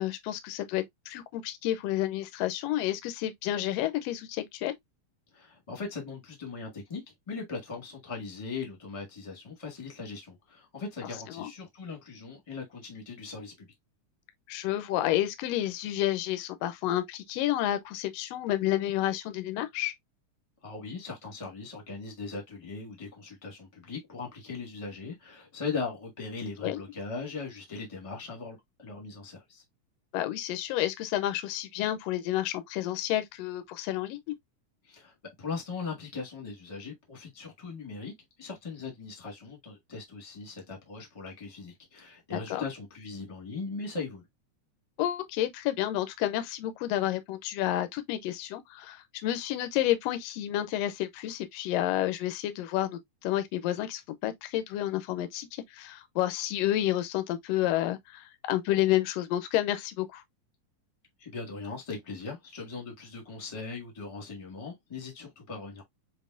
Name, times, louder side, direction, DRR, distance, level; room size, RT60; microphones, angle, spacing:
voice 1, 0.0-4.7 11.4-11.5 14.5-19.9 26.6-26.8 30.1-34.3 42.3-42.6 45.0-60.2, left 13 dB, 75° left, 1.6 m, -30 dB
voice 2, 5.3-7.0 7.3-13.7 20.6-29.6 34.8-38.1 38.4-44.3 61.2-65.8, left 4 dB, 20° left, 0.9 m, -39 dB
6.8 x 2.7 x 2.5 m
omnidirectional pair, 3.6 m